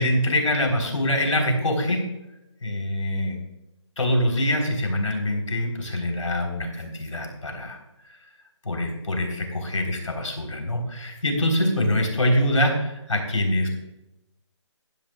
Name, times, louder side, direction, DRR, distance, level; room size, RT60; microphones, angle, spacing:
voice 1, 0.0-2.0 2.6-3.4 4.0-7.8 8.6-13.7, left 1 dB, 85° left, 2 dB, 3.8 m, -24 dB
16.0 x 11.0 x 2.4 m, 0.94 s
hypercardioid pair, 175°, 16 cm